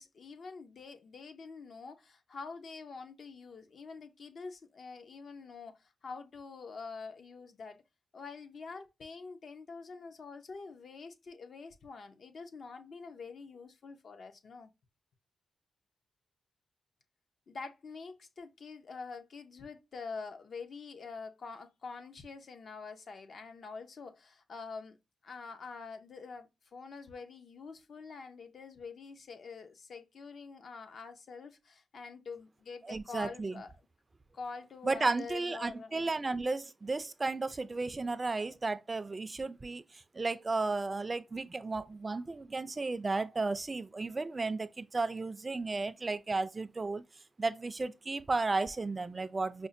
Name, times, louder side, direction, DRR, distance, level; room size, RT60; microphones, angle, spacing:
voice 1, 0.0-7.8 8.1-14.7 17.5-25.0 25.2-33.7 34.3-35.9, left 4 dB, 60° left, 0.6 m, -46 dB
voice 2, 32.9-33.6 34.8-39.8 40.1-47.0 47.4-49.7, right 3 dB, 30° right, 0.3 m, -34 dB
5.1 x 2.1 x 2.5 m
cardioid pair, 105°, 0 cm